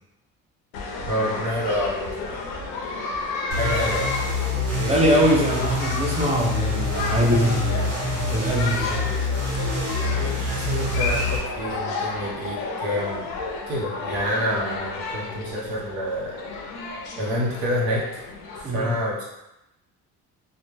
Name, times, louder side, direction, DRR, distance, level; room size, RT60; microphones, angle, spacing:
sound 1, 0.7-18.6, left 3 dB, 85° left, 0.6 m, -32 dB
voice 1, 1.1-2.4 3.5-4.1 10.1-13.3 13.7-16.4 17.2-18.2 18.6-19.2, equal, 70° right, -5 dB, 1.1 m, -28 dB
sound 2, 3.5-11.4, left 2 dB, 40° right, 1.2 m, -27 dB
voice 2, 4.7-9.1 18.6-19.0, equal, 15° right, -3 dB, 0.6 m, -23 dB
2.4 x 2.1 x 3.1 m, 0.90 s
cardioid pair, 105°, 37 cm